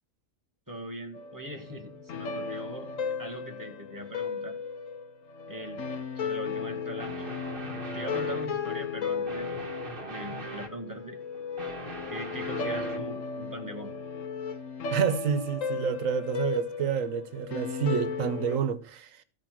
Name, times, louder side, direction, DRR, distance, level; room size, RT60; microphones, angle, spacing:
voice 1, 0.7-4.6 5.5-5.9 6.2-7.2 7.9-9.6 10.1-11.2 12.1-13.9, right 1 dB, 15° right, 2.0 m, -41 dB
sound 1, 1.1-18.6, left 5 dB, 85° left, 1.4 m, -35 dB
sound 2, 6.9-8.6 9.3-10.8 11.3-13.1, right 2 dB, 45° right, 1.6 m, -40 dB
voice 2, 14.9-19.2, right 7 dB, 85° right, 1.2 m, -29 dB
14.5 x 4.9 x 6.3 m
omnidirectional pair, 1.3 m